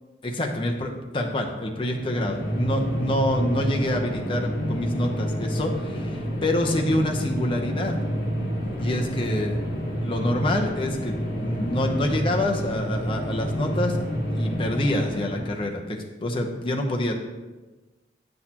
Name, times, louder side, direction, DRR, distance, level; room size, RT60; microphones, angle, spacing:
voice 1, 0.2-8.0 8.8-9.6 10.0-14.0 14.3-17.1, left 1 dB, 25° left, 1 dB, 0.8 m, -27 dB
sound 1, 1.8-15.6, equal, 50° left, 1.5 m, -28 dB
9.9 x 6.4 x 2.9 m, 1.2 s
head